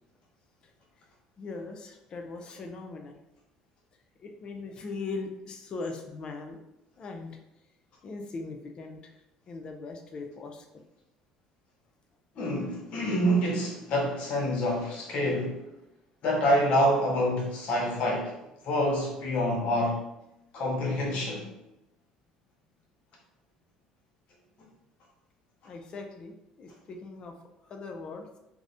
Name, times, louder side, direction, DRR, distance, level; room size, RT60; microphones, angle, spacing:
voice 1, 1.4-3.2 4.2-6.6 7.0-7.4 8.0-9.2 9.5-10.8 25.6-27.3 27.6-28.3, left 3 dB, 40° left, 0.3 m, -40 dB
voice 2, 12.4-15.6 16.2-18.3 18.6-20.0 20.5-21.5, equal, 60° left, 0.8 m, -27 dB
2.4 x 2.0 x 2.5 m
supercardioid pair, 85°, 2 cm